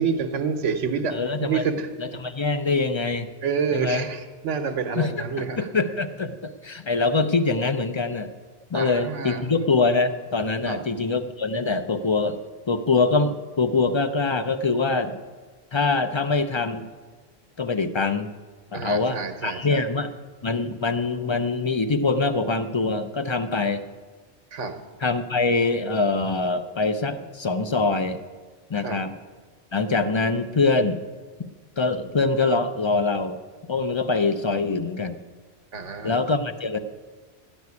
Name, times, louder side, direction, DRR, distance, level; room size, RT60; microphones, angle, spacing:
voice 1, 0.0-2.2 3.4-5.7 8.7-9.5 10.7-10.8 18.7-19.8 24.5-24.8 28.7-29.0 35.7-36.1, right 5 dB, 80° right, 7 dB, 1.3 m, -28 dB
voice 2, 1.1-1.7 2.0-3.3 3.7-4.1 5.0-5.1 5.4-8.3 8.7-12.4 12.7-15.2 15.7-16.9 17.6-18.3 18.7-20.1 20.4-23.8 25.0-28.2 28.7-29.1 29.7-31.0 31.8-33.4 33.7-35.2 36.0-36.8, left 3 dB, 40° left, 9 dB, 0.4 m, -24 dB
13.0 x 6.3 x 9.5 m, 1.4 s
omnidirectional pair, 1.2 m